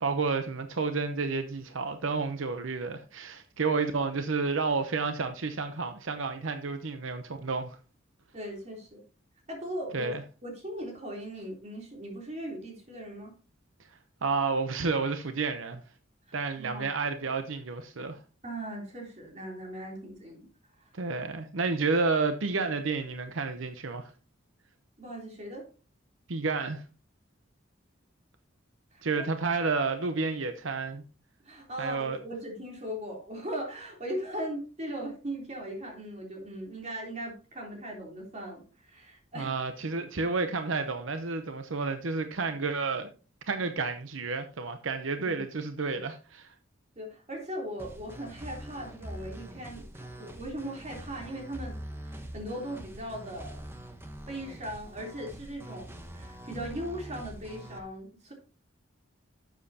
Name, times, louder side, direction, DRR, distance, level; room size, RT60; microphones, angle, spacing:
voice 1, 0.0-7.8 9.9-10.2 14.2-15.8 16.3-18.2 20.9-24.1 26.3-26.8 29.0-31.0 31.8-32.2 39.4-43.1 43.5-46.5, right 4 dB, 80° right, 0.8 m, -30 dB
voice 2, 8.3-9.0 9.5-10.2 10.4-13.3 16.6-16.9 18.4-20.5 20.8-20.9 25.0-25.7 28.9-29.2 31.4-39.5 45.2-45.4 45.9-46.0 47.0-51.8 52.1-53.6 54.3-58.3, right 1 dB, 35° right, 3.4 m, -39 dB
sound 1, 47.8-57.8, right 1 dB, 10° right, 1.0 m, -44 dB
12.0 x 7.4 x 2.8 m
head